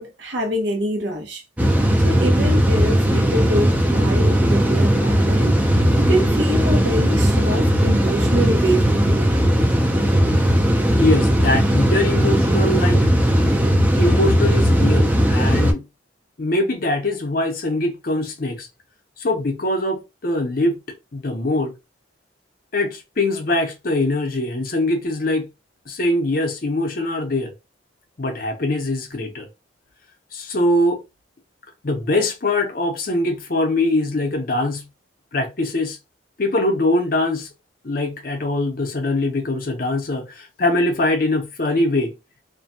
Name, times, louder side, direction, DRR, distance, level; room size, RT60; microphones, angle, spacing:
voice 1, 0.0-1.4 2.0-9.3, equal, 65° right, 0.8 m, -25 dB
sound 1, 1.6-15.7, equal, 5° right, 0.4 m, -17 dB
voice 2, 11.0-13.0 13.9-15.9 16.4-18.7 19.2-20.8 21.1-21.7 22.7-25.5 25.9-27.5 28.2-29.5 30.3-31.0 31.8-34.8 35.3-36.0 36.4-37.5 37.8-42.1, left 2 dB, 45° left, 0.6 m, -22 dB
2.5 x 2.2 x 2.6 m
head